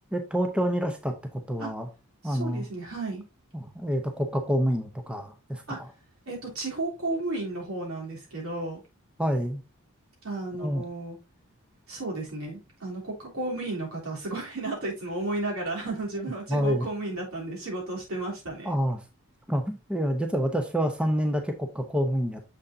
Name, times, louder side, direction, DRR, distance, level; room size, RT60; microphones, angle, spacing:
voice 1, 0.1-1.9 2.2-2.7 3.5-5.9 9.2-9.6 10.6-10.8 16.5-16.9 18.6-19.0 19.5-22.4, equal, 5° right, 0.7 m, -28 dB
voice 2, 2.2-3.2 5.7-5.8 6.3-8.8 10.2-11.2 11.9-18.8, right 2 dB, 75° right, 3.2 m, -33 dB
6.8 x 6.2 x 2.6 m
head